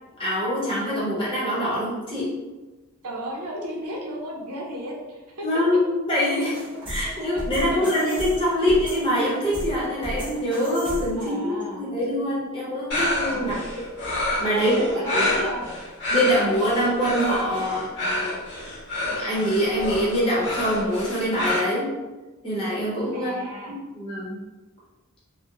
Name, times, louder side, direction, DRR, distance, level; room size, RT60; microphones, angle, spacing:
voice 1, 0.2-2.3 5.4-6.5 6.9-13.6 14.4-14.8 15.1-15.5 16.1-18.4 19.2-21.9 22.4-24.4, equal, 25° left, -8 dB, 0.8 m, -24 dB
voice 2, 3.0-5.5 6.3-6.5 7.1-7.4 11.1-11.8 13.3-13.6 14.6-15.6 23.1-23.7, equal, 90° right, -3 dB, 0.7 m, -34 dB
sound 1, 6.5-11.3, equal, 20° right, 0.7 m, -34 dB
sound 2, 12.9-21.6, left 1 dB, 50° left, 0.8 m, -28 dB
2.9 x 2.1 x 2.3 m, 1.2 s
head